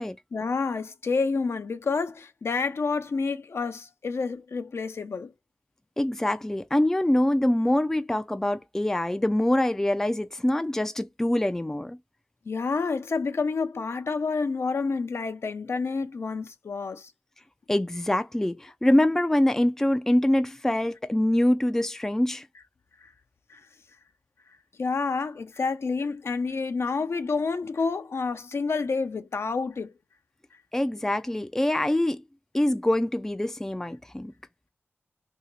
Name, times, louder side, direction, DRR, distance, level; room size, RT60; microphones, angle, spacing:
voice 1, 0.3-5.3 12.5-17.1 23.5-23.6 24.8-29.9, left 4 dB, 60° left, 0.5 m, -29 dB
voice 2, 6.0-12.0 17.7-22.5 30.7-32.2 32.5-34.3, left 1 dB, 10° left, 0.4 m, -24 dB
2.8 x 2.8 x 4.0 m
wide cardioid pair, 80°, 5 cm